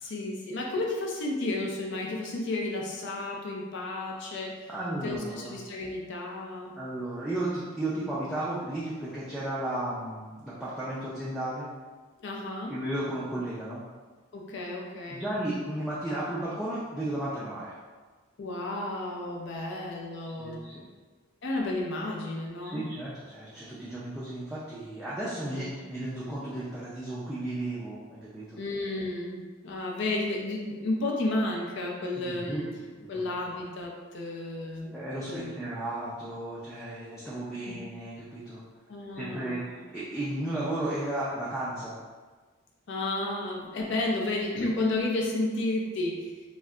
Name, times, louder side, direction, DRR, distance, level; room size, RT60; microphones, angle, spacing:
voice 1, 0.0-4.7 5.0-6.7 12.2-12.7 14.3-15.3 18.4-20.6 21.4-22.8 25.5-25.7 28.6-32.7 33.1-34.9 35.3-35.5 37.7-37.8 38.9-39.7 42.9-46.2, left 2 dB, 55° left, -1 dB, 0.5 m, -32 dB
voice 2, 4.7-5.5 6.8-11.7 12.7-13.8 15.1-17.7 20.2-20.9 22.6-28.6 32.2-32.6 33.1-33.2 34.9-38.6 39.1-42.0, right 1 dB, ahead, -10 dB, 0.3 m, -34 dB
2.3 x 2.1 x 3.6 m, 1.4 s
head